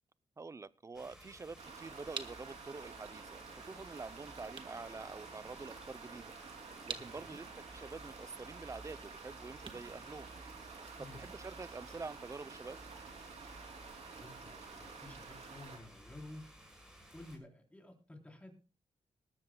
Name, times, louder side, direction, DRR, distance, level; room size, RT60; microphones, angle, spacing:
voice 1, 0.4-6.3 6.8-10.3 11.0-12.8, right 4 dB, 25° right, 16 dB, 0.5 m, -47 dB
sound 1, 0.9-17.4, equal, 5° right, 5.4 m, -56 dB
sound 2, 1.5-10.9, right 4 dB, 45° right, 1.4 m, -51 dB
sound 3, 1.6-15.8, right 5 dB, 75° right, 3.0 m, -51 dB
voice 2, 6.9-7.4 11.0-11.2 14.1-16.5 17.1-18.5, left 2 dB, 10° left, 2 dB, 3.5 m, -52 dB
20.0 x 13.5 x 2.2 m, 0.32 s
cardioid pair, 95°, 11 cm